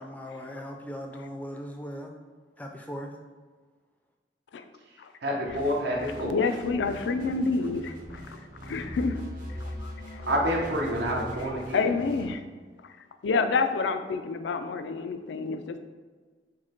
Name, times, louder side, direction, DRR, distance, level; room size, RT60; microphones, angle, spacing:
voice 1, 0.0-2.1 2.6-3.1, equal, 10° left, 3 dB, 0.4 m, -39 dB
voice 2, 5.2-6.4 10.3-11.9, equal, 80° right, -1 dB, 0.8 m, -28 dB
sound 1, 5.5-12.3, equal, 50° right, 0.7 m, -40 dB
voice 3, 6.2-7.9 8.7-9.1 11.7-12.4 13.2-15.8, left 4 dB, 90° left, 8 dB, 0.4 m, -27 dB
4.7 x 2.2 x 4.3 m, 1.4 s
head